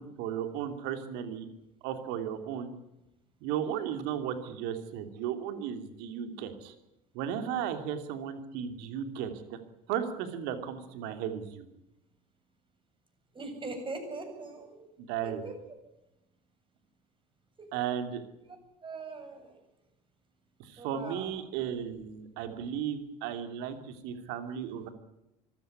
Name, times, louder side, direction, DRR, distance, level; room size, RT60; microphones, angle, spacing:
voice 1, 0.0-1.5 1.8-2.7 3.4-6.7 7.1-9.6 9.9-11.7 15.0-15.4 17.7-18.2 20.6-24.9, right 9 dB, 60° right, 8 dB, 2.9 m, -35 dB
voice 2, 13.3-14.9 15.2-15.8 17.6-17.7 18.5-18.6 18.8-19.6 20.8-21.3, right 3 dB, 25° right, 5 dB, 7.7 m, -41 dB
24.5 x 15.0 x 9.7 m, 0.89 s
figure-of-eight pair, 65°, 20 cm